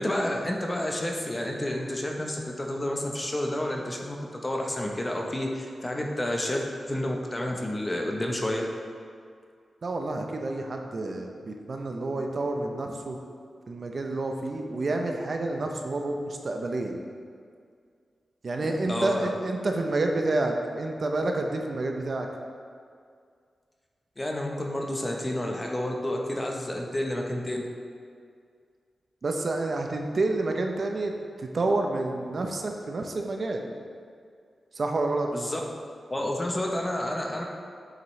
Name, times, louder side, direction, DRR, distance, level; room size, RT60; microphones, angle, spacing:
voice 1, 0.0-4.2 4.4-8.7 18.6-19.3 24.2-27.7 35.3-35.6 36.1-37.4, left 1 dB, 20° left, 0 dB, 0.9 m, -30 dB
voice 2, 9.8-13.2 13.7-17.0 18.4-22.3 29.2-33.7 34.7-35.3, right 2 dB, 50° right, 3 dB, 0.6 m, -29 dB
7.6 x 5.9 x 3.1 m, 2.1 s
wide cardioid pair, 90°, 0 cm